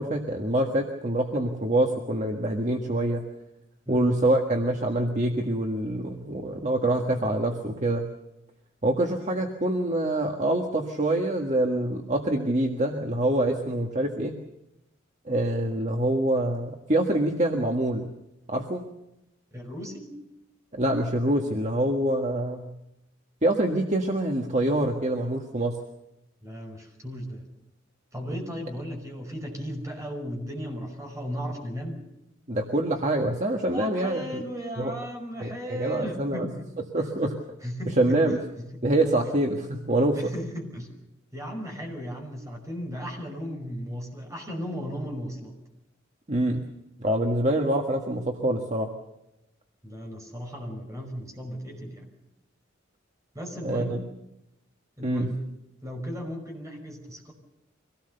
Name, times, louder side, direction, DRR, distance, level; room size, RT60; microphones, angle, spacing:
voice 1, 0.0-3.2 3.9-8.1 8.8-14.4 15.2-18.1 18.5-18.9 20.7-22.7 23.4-25.8 32.5-34.4 34.8-35.0 35.4-36.5 36.9-37.3 38.0-38.4 38.8-40.1 46.3-46.6 47.0-48.9 53.6-54.0 55.0-55.3, right 1 dB, 35° right, 2 dB, 1.7 m, -25 dB
voice 2, 19.5-20.1 26.4-27.5 28.1-32.0 33.7-36.7 37.0-37.1 37.6-38.8 39.2-39.3 40.1-40.9 41.3-45.6 49.8-52.1 53.3-54.0 55.0-55.4 55.8-57.3, equal, 15° right, 3 dB, 5.3 m, -36 dB
24.5 x 18.0 x 6.8 m, 0.89 s
head